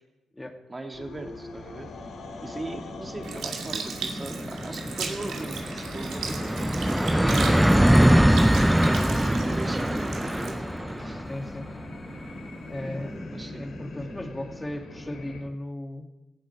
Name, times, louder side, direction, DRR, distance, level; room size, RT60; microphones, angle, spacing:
voice 1, 0.7-1.9 2.4-8.8 9.2-11.2 13.3-13.7, right 2 dB, 25° right, 4 dB, 2.4 m, -39 dB
sound 1, 0.9-15.4, left 4 dB, 65° left, 3.0 m, -44 dB
sound 2, 2.2-2.3 2.6-2.7 2.9-14.4, equal, 5° right, 0.5 m, -24 dB
Sink (filling or washing) / Liquid, 3.2-11.8 12.4-12.6, right 6 dB, 70° right, 2.4 m, -37 dB
voice 2, 11.3-11.8 12.7-13.2 13.5-16.1, left 1 dB, 15° left, 5 dB, 2.3 m, -36 dB
19.0 x 15.5 x 4.8 m, 1.0 s
hypercardioid pair, 50°, 0 cm